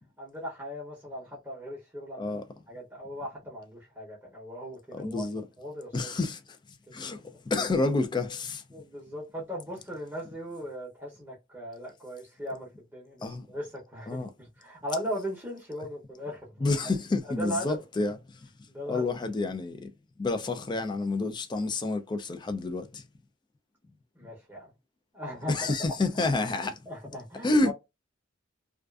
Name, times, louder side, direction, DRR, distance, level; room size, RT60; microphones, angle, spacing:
voice 1, 0.2-2.4 2.7-5.3 5.6-6.1 8.7-17.0 17.3-17.8 18.7-19.2 24.1-24.7 25.1-25.6 26.6-27.7, equal, 10° right, 0.7 m, -38 dB
voice 2, 4.9-5.4 5.9-6.4 6.9-8.6 13.2-13.5 14.1-14.3 16.6-18.2 18.9-19.9 20.2-23.0 25.5-26.8 27.4-27.7, left 3 dB, 20° left, 0.3 m, -29 dB
2.4 x 2.3 x 2.3 m
head